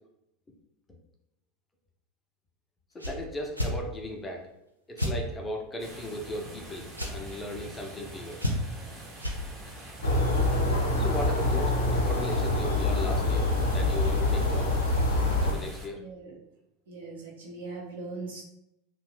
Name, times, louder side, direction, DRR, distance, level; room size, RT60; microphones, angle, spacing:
voice 1, 2.9-4.5 4.9-8.4 11.0-14.8 15.4-16.0, left 1 dB, 15° left, 1 dB, 0.5 m, -37 dB
sound 1, 3.0-3.2 3.5-3.7 5.0-5.2 6.9-7.1 8.4-8.8 9.2-9.4, equal, 90° right, 0.4 m, -29 dB
sound 2, 5.8-15.9, right 1 dB, 25° right, 0.7 m, -45 dB
sound 3, 10.0-15.5, left 2 dB, 70° left, 0.5 m, -25 dB
voice 2, 15.9-16.4 16.9-18.4, right 3 dB, 65° right, -2 dB, 0.7 m, -40 dB
2.4 x 2.1 x 3.2 m, 0.84 s
figure-of-eight pair, 80°, 0 cm